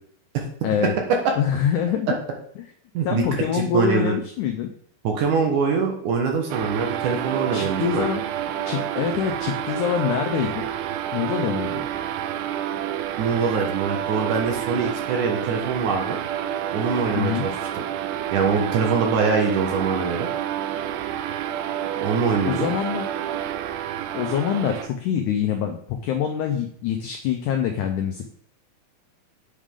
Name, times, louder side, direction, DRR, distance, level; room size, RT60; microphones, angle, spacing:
voice 1, 0.6-0.9 1.4-2.2 3.1-4.7 7.5-8.2 8.7-10.6 11.1-11.8 17.1-17.5 22.4-23.1 24.1-28.3, left 8 dB, 85° left, 4 dB, 1.8 m, -25 dB
voice 2, 2.9-4.1 5.0-8.1 13.2-16.2 16.7-17.6 18.3-20.3 22.0-22.7, right 5 dB, 65° right, 2 dB, 2.3 m, -23 dB
sound 1, 6.5-24.9, right 10 dB, 85° right, 2.4 m, -29 dB
8.3 x 4.9 x 3.7 m, 0.63 s
omnidirectional pair, 4.3 m